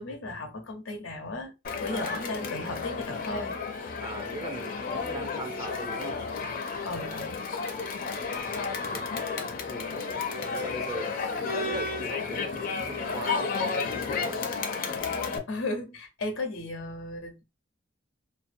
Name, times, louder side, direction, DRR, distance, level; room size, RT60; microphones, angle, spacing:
voice 1, 0.0-1.5 1.8-3.6 6.8-7.4 10.2-10.3 15.5-17.4, left 2 dB, 90° left, 0.7 m, -35 dB
Crowd, 1.6-15.4, left 4 dB, 45° left, 0.4 m, -32 dB
voice 2, 1.9-2.4 4.0-6.2 8.0-14.5, right 2 dB, 20° right, 0.4 m, -41 dB
2.6 x 2.0 x 2.5 m
head